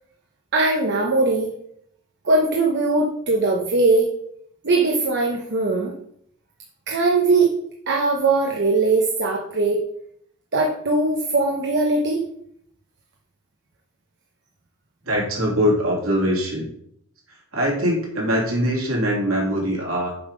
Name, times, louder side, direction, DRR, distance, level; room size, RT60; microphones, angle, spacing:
voice 1, 0.5-1.5 2.2-4.1 4.6-5.9 6.9-7.6 7.9-9.8 10.5-12.3, right 3 dB, 55° right, 0 dB, 1.0 m, -20 dB
voice 2, 15.0-16.7 17.5-20.1, equal, 70° right, -2 dB, 3.1 m, -22 dB
7.0 x 5.7 x 5.1 m, 0.71 s
head